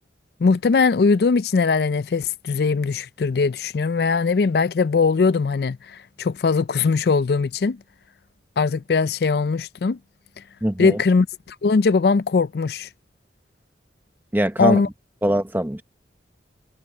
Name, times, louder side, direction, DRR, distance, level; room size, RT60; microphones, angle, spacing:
voice 1, 0.4-7.8 8.6-10.0 10.8-12.9 14.6-14.9, left 4 dB, 60° left, 0.4 m, -20 dB
voice 2, 10.6-11.0 14.3-14.8 15.2-15.8, right 1 dB, 10° right, 0.8 m, -22 dB
head